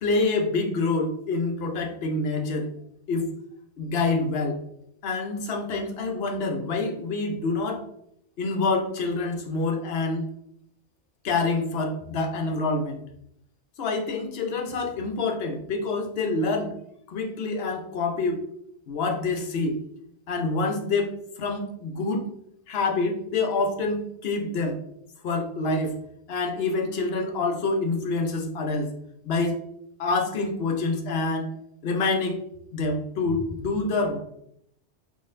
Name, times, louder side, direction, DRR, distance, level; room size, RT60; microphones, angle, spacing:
voice 1, 0.0-2.7 3.1-3.3 3.8-4.6 5.0-7.8 8.4-10.2 11.2-13.0 13.8-16.8 17.1-18.4 18.9-19.8 20.3-22.3 22.7-24.8 25.2-25.9 26.3-28.9 29.2-29.6 30.0-31.5 31.8-32.4 32.7-34.2, left 3 dB, 60° left, 2 dB, 0.9 m, -26 dB
3.8 x 3.1 x 2.5 m, 0.74 s
omnidirectional pair, 1.2 m